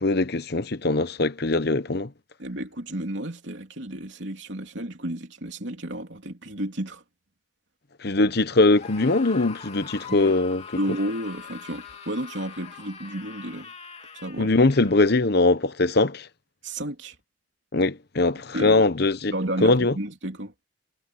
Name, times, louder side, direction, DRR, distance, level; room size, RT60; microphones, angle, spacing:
voice 1, 0.0-2.1 8.0-10.6 14.4-16.3 17.7-19.3 19.6-19.9, left 2 dB, 55° left, 1.0 m, -21 dB
voice 2, 2.4-7.0 10.1-10.3 10.8-13.7 14.1-14.5 16.6-17.2 18.5-18.8 19.3-20.5, right 1 dB, 65° right, 3.3 m, -32 dB
Screaming, 8.7-15.2, left 6 dB, 35° left, 2.8 m, -43 dB
head